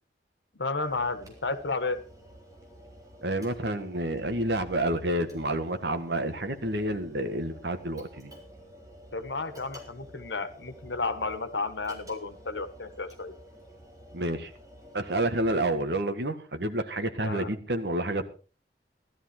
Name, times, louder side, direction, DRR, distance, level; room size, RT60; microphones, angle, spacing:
voice 1, 0.5-2.0 9.1-13.3 17.2-17.5, left 3 dB, 85° left, 10 dB, 1.6 m, -32 dB
sound 1, 0.8-15.6, equal, 20° right, 4.2 m, -50 dB
voice 2, 3.2-8.3 14.1-14.5 14.9-18.2, right 1 dB, 75° right, 8 dB, 1.8 m, -29 dB
16.0 x 12.5 x 4.5 m, 0.36 s
head